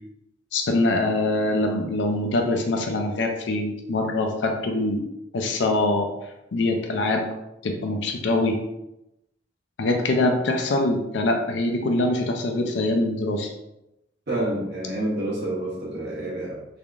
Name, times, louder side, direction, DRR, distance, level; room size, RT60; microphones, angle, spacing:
voice 1, 0.5-5.1 5.3-6.1 6.5-7.3 7.6-8.6 9.8-13.5, left 2 dB, 70° left, 3 dB, 0.4 m, -23 dB
voice 2, 14.3-16.6, right 1 dB, 60° right, -6 dB, 1.0 m, -28 dB
3.4 x 3.4 x 2.4 m, 0.90 s
head